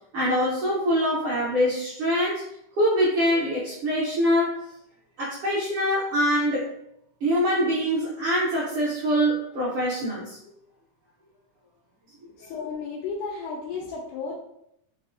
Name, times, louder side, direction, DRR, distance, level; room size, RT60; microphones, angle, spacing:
voice 1, 0.1-2.4 2.8-4.6 5.2-6.6 7.2-10.4, equal, 70° right, -8 dB, 1.4 m, -24 dB
voice 2, 12.4-14.3, left 5 dB, 85° left, -3 dB, 2.0 m, -33 dB
4.8 x 2.1 x 2.4 m, 0.76 s
omnidirectional pair, 3.4 m